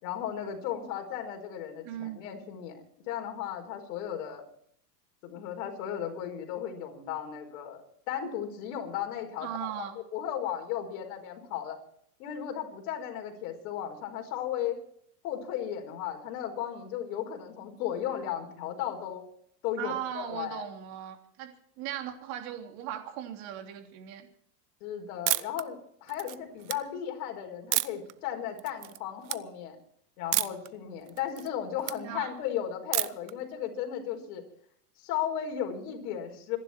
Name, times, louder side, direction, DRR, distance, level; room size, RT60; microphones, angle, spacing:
voice 1, 0.0-4.4 5.2-11.8 12.2-14.8 15.2-19.2 19.6-20.6 24.8-29.8 30.2-34.4 35.0-36.6, left 10 dB, 60° left, 3 dB, 5.0 m, -35 dB
voice 2, 1.8-2.2 9.4-10.0 19.8-24.3 32.0-32.3, right 11 dB, 50° right, 5 dB, 3.4 m, -38 dB
sound 1, 25.3-25.6 26.1-26.7 27.7-28.1 28.6-29.0 29.2-29.4 30.3-30.7 31.1-32.0 32.9-33.3, right 17 dB, 75° right, 1.0 m, -29 dB
26.5 x 11.5 x 4.5 m, 0.66 s
supercardioid pair, 135°, 48 cm